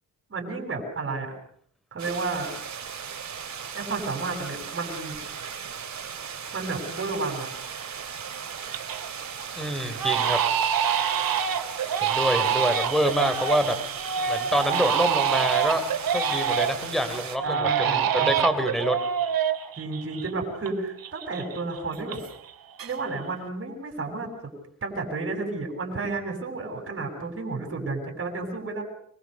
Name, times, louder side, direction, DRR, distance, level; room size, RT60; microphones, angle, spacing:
voice 1, 0.3-1.3 1.9-2.5 3.7-5.2 6.5-7.5 17.4-18.3 19.8-22.2 22.8-24.5 24.8-28.8, right 3 dB, 35° right, 2 dB, 7.2 m, -31 dB
sound 1, 2.0-17.4, right 7 dB, 50° right, 2.9 m, -37 dB
Crying sobbing, 6.8-6.9 7.4-7.8 8.2-9.1 9.4-9.5 10.0-16.9 17.4-20.7 21.0-22.5 22.8-23.3, right 8 dB, 75° right, 2.4 m, -26 dB
voice 2, 9.5-10.4 12.0-13.8 14.3-15.8 16.1-19.0, equal, ahead, 8 dB, 3.9 m, -26 dB
25.5 x 23.0 x 6.8 m, 0.64 s
wide cardioid pair, 130°, 35 cm